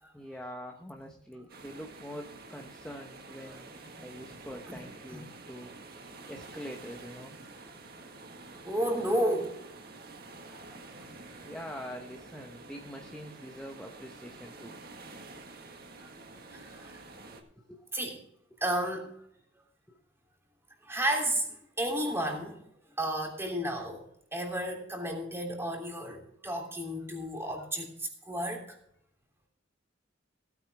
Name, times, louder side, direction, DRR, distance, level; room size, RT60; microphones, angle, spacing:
voice 1, 0.1-3.7 4.0-5.7 6.3-7.4 11.4-14.8 17.7-17.8 19.9-20.0, equal, 5° left, 1 dB, 1.1 m, -44 dB
sound 1, 1.5-17.4, right 3 dB, 50° right, 1.7 m, -49 dB
voice 2, 3.4-4.1 4.7-4.8 8.6-9.6 10.5-11.1 16.0-17.1 17.9-18.2 18.6-19.1 20.8-22.6 23.0-24.0 24.3-28.8, right 1 dB, 15° right, 1 dB, 3.1 m, -33 dB
16.5 x 9.2 x 3.5 m, 0.69 s
head